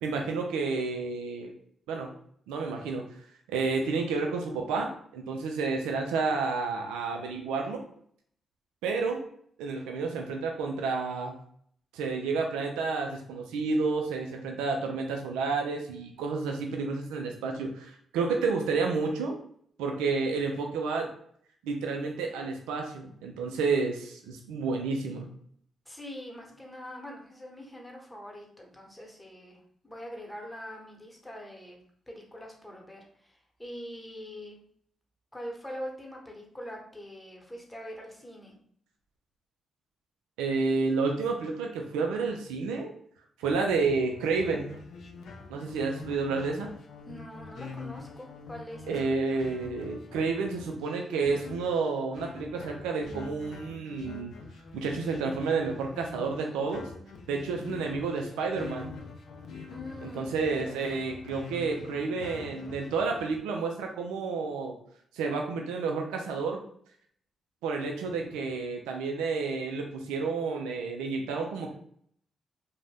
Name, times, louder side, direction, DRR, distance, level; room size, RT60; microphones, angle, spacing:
voice 1, 0.0-1.5 1.9-2.1 2.5-3.0 3.5-7.8 8.8-9.2 9.6-11.3 11.9-19.4 19.8-21.1 21.6-25.3 40.4-42.9 43.4-44.8 45.5-46.7 48.9-54.3 54.7-56.9 57.3-58.9 60.0-64.8 65.1-66.6 67.6-71.7, right 4 dB, 85° right, 2 dB, 0.3 m, -30 dB
voice 2, 25.9-31.8 32.1-34.6 35.3-38.5 47.1-49.0 49.3-49.5 59.7-60.4, equal, 15° left, 0 dB, 1.0 m, -43 dB
sound 1, 44.1-63.4, left 4 dB, 70° left, 0.4 m, -45 dB
2.5 x 2.1 x 3.3 m, 0.64 s
hypercardioid pair, 45°, 0 cm